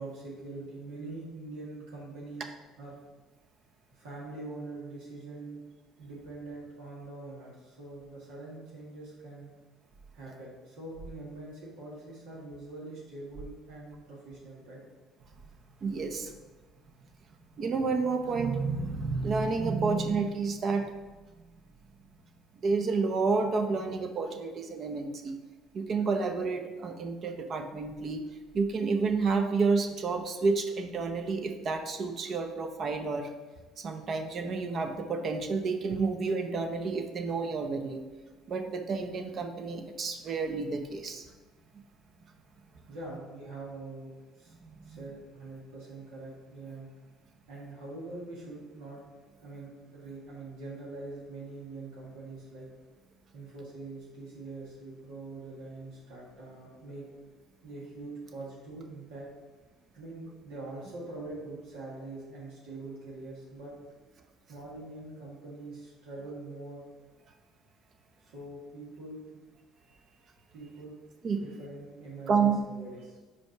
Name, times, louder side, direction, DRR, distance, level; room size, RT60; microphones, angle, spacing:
voice 1, 0.0-2.5 2.8-3.0 3.9-5.6 6.0-9.5 10.1-14.8 42.9-44.5 44.8-46.9 47.5-49.0 49.3-52.7 53.3-57.0 57.6-59.3 59.9-63.7 64.5-67.0 68.2-69.4 70.5-70.9 71.4-73.2, right 2 dB, 85° right, -6 dB, 1.7 m, -44 dB
voice 2, 15.8-16.3 17.6-20.9 22.6-25.4 25.7-28.2 28.5-33.3 33.8-38.0 38.5-41.2 44.7-45.1 71.2-71.4 72.3-72.6, right 4 dB, 45° right, 5 dB, 0.8 m, -30 dB
5.1 x 4.8 x 4.5 m, 1.3 s
supercardioid pair, 80°, 0 cm